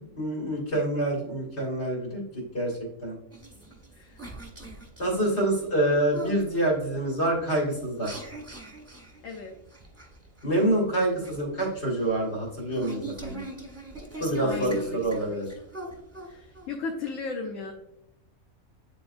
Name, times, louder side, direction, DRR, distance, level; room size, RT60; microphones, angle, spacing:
voice 1, 0.0-3.2 5.0-8.2 10.4-13.4 14.2-15.5, right 1 dB, 50° left, -2 dB, 2.2 m, -27 dB
sound 1, 3.3-16.7, right 2 dB, 10° right, 1.0 m, -41 dB
voice 2, 3.9-4.3 9.2-9.5 14.4-15.2 16.2-17.7, left 4 dB, 65° left, 1 dB, 1.1 m, -35 dB
9.3 x 3.9 x 2.5 m, 0.79 s
omnidirectional pair, 1.5 m